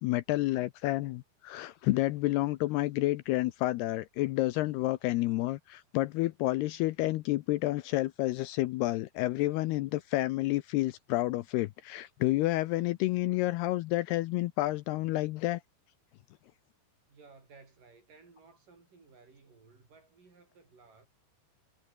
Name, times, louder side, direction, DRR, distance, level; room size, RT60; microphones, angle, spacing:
voice 1, 0.0-15.6, left 18 dB, 80° left, 2.5 m, -30 dB
voice 2, 17.1-21.1, right 4 dB, 45° right, 7.6 m, -58 dB
omnidirectional pair, 5.1 m